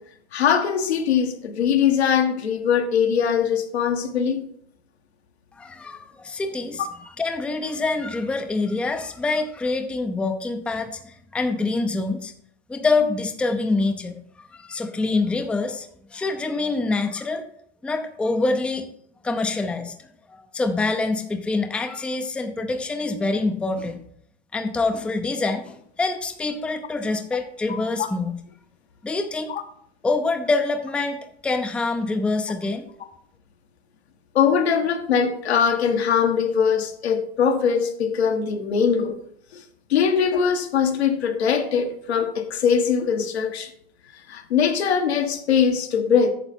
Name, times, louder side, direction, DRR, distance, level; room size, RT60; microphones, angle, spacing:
voice 1, 0.3-4.4 6.8-6.9 27.7-27.8 29.5-29.6 34.3-39.2 39.5-39.6 39.9-43.7 44.3-46.3, left 7 dB, 80° left, 5 dB, 1.5 m, -21 dB
voice 2, 5.6-6.8 7.2-12.3 12.7-14.1 14.5-17.4 17.8-18.9 19.2-19.9 20.5-24.0 24.5-28.4 29.0-29.5 30.0-32.9, left 3 dB, 5° left, 6 dB, 0.5 m, -25 dB
9.1 x 6.6 x 4.3 m, 0.67 s
hypercardioid pair, 120°, 32 cm